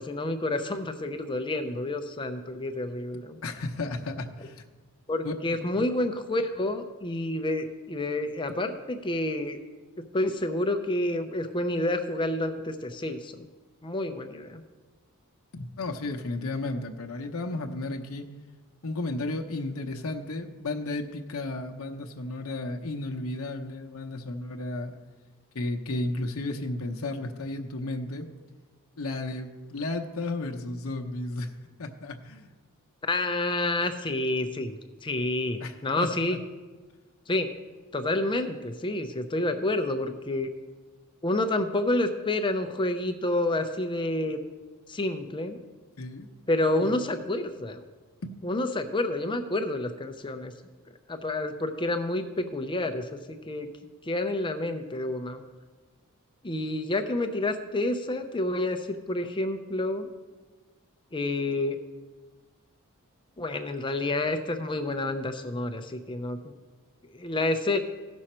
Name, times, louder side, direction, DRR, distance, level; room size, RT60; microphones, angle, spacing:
voice 1, 0.0-3.4 5.1-9.6 10.1-13.5 13.8-14.6 33.0-36.4 37.3-37.5 37.9-40.5 41.2-44.4 44.9-45.6 46.5-47.8 48.4-50.5 51.1-53.7 54.0-55.4 56.4-60.1 61.1-61.8 63.4-66.4 67.1-67.8, left 2 dB, 20° left, 7 dB, 0.6 m, -29 dB
voice 2, 3.4-4.6 5.2-5.3 5.7-5.9 15.5-18.3 18.8-24.9 25.5-28.3 29.0-31.5 31.8-32.5 35.6-36.1 46.0-46.3 46.8-46.9 48.2-48.4, left 2 dB, 70° left, 3 dB, 0.8 m, -33 dB
16.0 x 6.3 x 4.3 m, 1.3 s
head